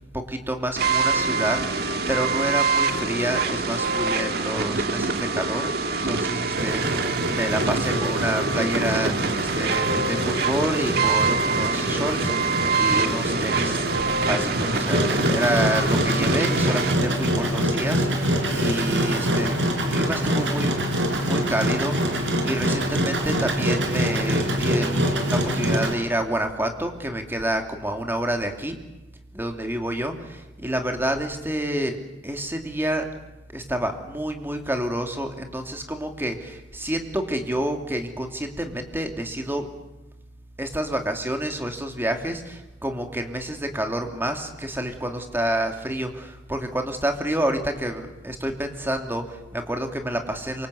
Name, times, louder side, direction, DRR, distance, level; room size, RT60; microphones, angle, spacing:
voice 1, 0.1-13.9 14.2-19.6 19.9-20.8 21.2-28.8 29.3-32.0 32.2-33.1 33.5-39.7 40.6-50.7, right 1 dB, 10° right, 4 dB, 2.9 m, -28 dB
sound 1, 0.8-16.9, right 4 dB, 60° right, 1.9 m, -25 dB
Engine, 6.6-25.9, equal, 75° right, 5.6 m, -25 dB
27.0 x 24.5 x 8.3 m, 1.0 s
head